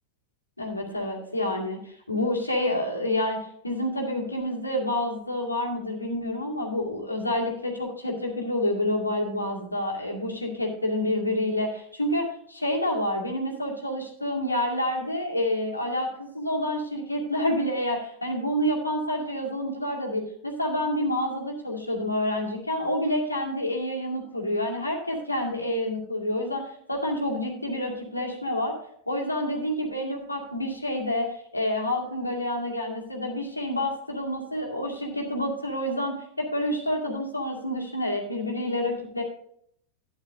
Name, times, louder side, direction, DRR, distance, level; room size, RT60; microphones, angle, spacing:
voice 1, 0.6-3.4 3.6-26.6 26.9-28.7 29.1-39.2, left 1 dB, 80° left, 0 dB, 2.3 m, -28 dB
12.0 x 9.4 x 2.7 m, 0.67 s
figure-of-eight pair, 90°, 0 cm